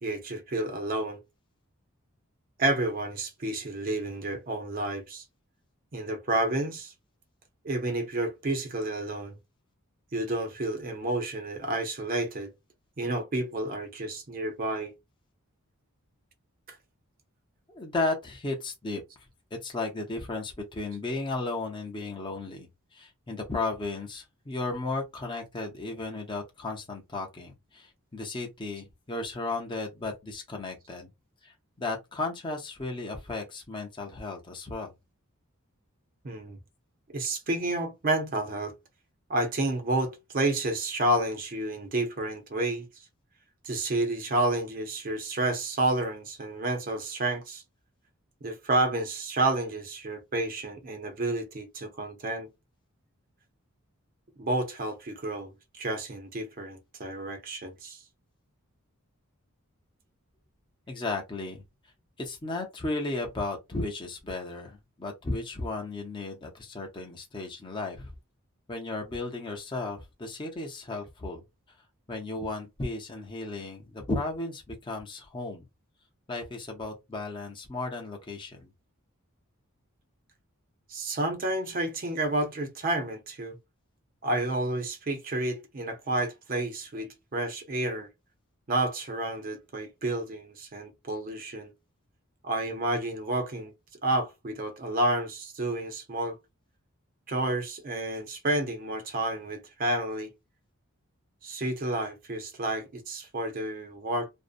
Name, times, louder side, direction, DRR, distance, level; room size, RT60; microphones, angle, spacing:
voice 1, 0.0-1.2 2.6-5.2 5.9-6.9 7.6-9.4 10.1-12.5 13.0-14.9 36.2-36.6 37.1-38.7 39.3-42.9 43.6-47.6 48.4-52.5 54.4-58.0 80.9-83.6 84.2-88.1 88.7-91.7 92.4-93.7 94.0-96.4 97.3-100.3 101.4-104.3, right 2 dB, 40° right, 0.6 m, -30 dB
voice 2, 17.7-19.0 19.5-31.1 31.4-34.9 60.9-61.6 62.2-68.1 68.7-71.4 72.1-75.6 76.3-78.7, left 2 dB, 20° left, 0.5 m, -34 dB
2.5 x 2.0 x 2.5 m
head